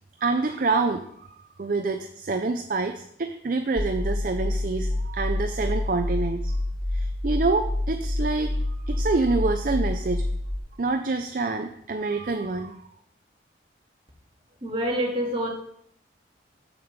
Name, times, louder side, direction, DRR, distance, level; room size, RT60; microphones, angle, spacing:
voice 1, 0.2-6.5 6.9-10.2 10.8-12.8, right 3 dB, 45° right, 6 dB, 0.5 m, -27 dB
sound 1, 3.8-10.6, left 1 dB, 20° left, 0.6 m, -27 dB
voice 2, 14.6-15.5, equal, 30° right, -2 dB, 2.1 m, -26 dB
7.0 x 5.2 x 7.3 m, 0.69 s
head